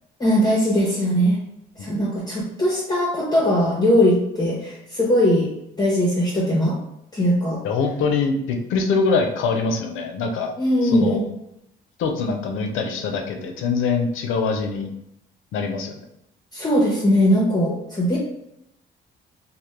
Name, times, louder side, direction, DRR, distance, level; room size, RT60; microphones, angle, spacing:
voice 1, 0.2-1.4 1.8-5.5 5.8-6.8 7.1-7.6 10.6-11.3 16.5-18.2, equal, 20° left, -5 dB, 0.6 m, -20 dB
voice 2, 7.6-10.5 10.8-11.2 12.0-14.9 15.5-16.0, left 4 dB, 85° left, 3 dB, 0.4 m, -23 dB
2.1 x 2.0 x 3.0 m, 0.81 s
cardioid pair, 90°, 20 cm